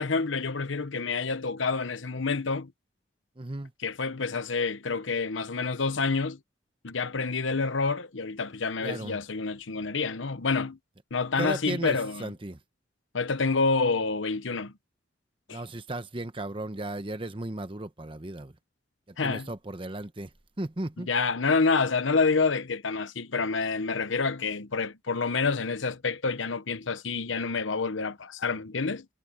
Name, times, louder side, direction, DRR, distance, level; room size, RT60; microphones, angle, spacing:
voice 1, 0.0-2.7 3.8-6.4 6.8-10.8 11.1-12.3 13.1-14.7 15.5-15.6 19.2-19.5 21.0-29.1, left 4 dB, 80° left, 1.0 m, -28 dB
voice 2, 3.4-3.7 8.8-9.2 11.4-12.6 15.5-18.5 19.1-20.3 20.6-21.1, right 1 dB, 25° right, 1.0 m, -35 dB
head